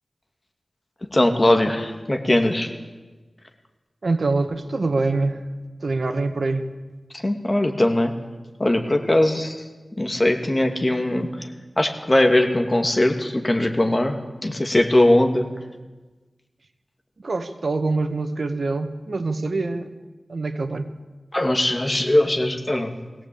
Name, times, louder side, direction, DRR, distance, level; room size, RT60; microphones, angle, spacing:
voice 1, 1.1-2.7 7.1-8.1 8.6-9.7 10.0-11.5 11.8-14.2 14.4-15.5 21.3-22.9, left 1 dB, 30° left, 5 dB, 2.6 m, -20 dB
voice 2, 4.0-5.4 5.8-6.7 17.2-19.9 20.3-20.9, right 3 dB, 70° right, 8 dB, 1.8 m, -24 dB
22.0 x 17.0 x 8.7 m, 1.2 s
wide cardioid pair, 55°, 0 cm